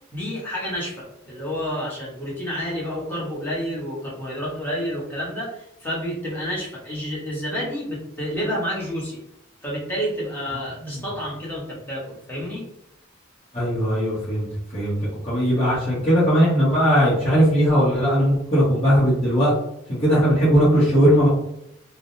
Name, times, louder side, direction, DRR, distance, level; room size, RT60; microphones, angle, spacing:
voice 1, 0.1-9.2 9.6-12.6, equal, 10° left, -5 dB, 1.0 m, -29 dB
voice 2, 13.5-14.5 14.7-15.0 15.2-19.5 19.9-21.3, equal, 30° left, -9 dB, 1.0 m, -18 dB
3.4 x 2.0 x 2.6 m, 0.79 s
head